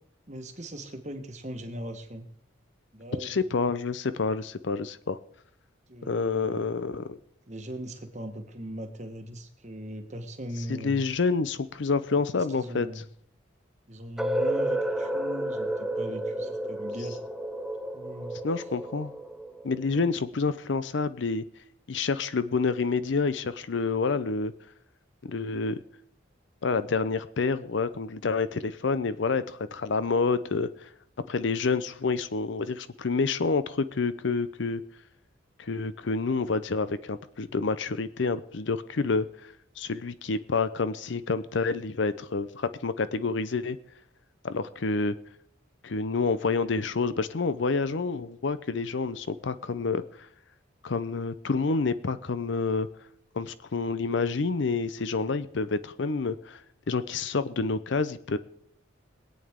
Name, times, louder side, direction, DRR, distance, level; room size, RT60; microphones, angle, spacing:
voice 1, 0.3-2.2 2.9-3.4 5.9-6.7 7.5-11.0 12.3-13.0 13.9-17.2 17.9-18.3, equal, 35° right, 5 dB, 1.3 m, -39 dB
voice 2, 3.2-5.2 6.0-7.2 10.7-12.9 18.4-19.1 19.6-21.4 21.9-24.5 25.3-25.8 26.6-30.9 31.3-34.8 35.6-43.8 44.4-45.2 45.8-50.3 50.8-52.9 53.3-56.6 56.9-58.4, left 4 dB, 65° left, 14 dB, 0.6 m, -28 dB
sound 1, 14.2-20.0, right 1 dB, ahead, 0.5 m, -31 dB
22.0 x 8.7 x 3.6 m, 0.67 s
head